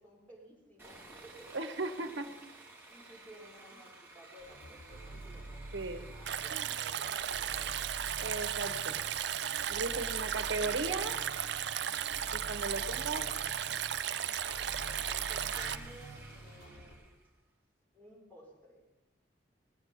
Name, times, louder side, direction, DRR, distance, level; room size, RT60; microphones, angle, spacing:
voice 1, 0.0-1.6 1.9-2.3 2.9-5.5 6.1-8.1 9.8-10.2 12.6-13.5 14.3-17.2 17.9-18.9, right 1 dB, 10° left, -4 dB, 5.6 m, -56 dB
Sawing, 0.8-17.2, right 3 dB, 10° right, 2.5 m, -51 dB
voice 2, 1.5-2.3 5.7-6.0 6.5-6.7 8.2-9.0 9.7-11.2 12.3-13.2, right 3 dB, 80° right, 8 dB, 1.4 m, -36 dB
sound 1, 4.4-16.9, right 1 dB, 80° left, 5.7 m, -48 dB
Stream, 6.3-15.8, right 10 dB, 65° right, 0.5 m, -35 dB
18.5 x 8.6 x 8.9 m, 0.94 s
head